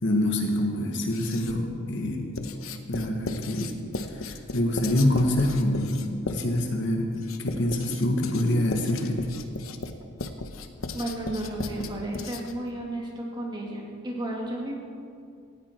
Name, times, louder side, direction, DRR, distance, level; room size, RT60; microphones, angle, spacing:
voice 1, 0.0-2.3 2.9-3.7 4.5-7.1 7.4-9.3, left 1 dB, 60° left, 3 dB, 1.6 m, -25 dB
Writing, 1.0-1.7 2.4-12.7, left 3 dB, 80° left, 1.0 m, -36 dB
voice 2, 10.9-14.8, right 1 dB, 20° right, -2 dB, 2.7 m, -33 dB
18.5 x 15.0 x 4.6 m, 2.3 s
head